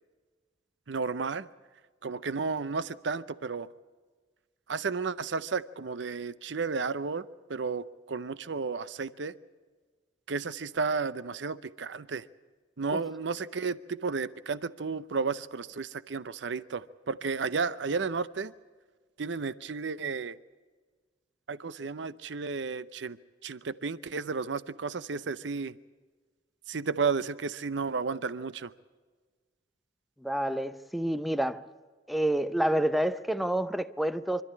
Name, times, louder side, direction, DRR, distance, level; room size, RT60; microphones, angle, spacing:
voice 1, 0.9-1.5 2.0-3.7 4.7-9.3 10.3-12.2 12.8-18.5 19.2-20.4 21.5-23.2 23.4-25.7 26.7-28.7, right 4 dB, 70° right, 0.6 m, -33 dB
voice 2, 30.2-31.6 32.1-34.4, right 1 dB, ahead, 0.6 m, -28 dB
25.5 x 13.0 x 9.6 m
head